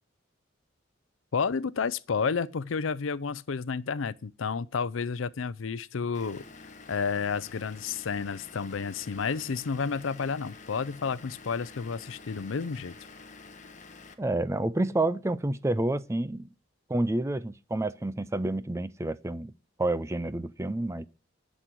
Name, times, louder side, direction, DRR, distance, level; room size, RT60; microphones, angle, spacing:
voice 1, 1.3-6.4 6.9-12.9, left 5 dB, 80° left, 0.5 m, -31 dB
Vehicle / Engine, 6.1-14.1, left 4 dB, 40° left, 1.2 m, -49 dB
voice 2, 14.2-16.5 16.9-19.5 19.8-21.1, right 2 dB, 15° right, 0.4 m, -29 dB
10.0 x 6.1 x 8.2 m
head